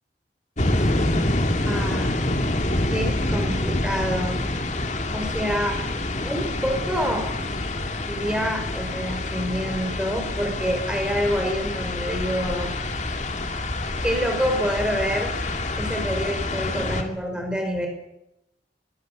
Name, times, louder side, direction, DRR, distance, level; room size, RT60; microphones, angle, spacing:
sound 1, 0.6-17.0, left 1 dB, 45° left, 2.6 m, -27 dB
voice 1, 0.7-1.1 1.6-2.2 2.8-4.4 5.1-5.8 6.2-7.3 8.0-12.7 14.0-15.3 15.8-17.9, equal, 5° right, 3 dB, 5.2 m, -27 dB
22.0 x 22.0 x 8.1 m, 0.85 s
head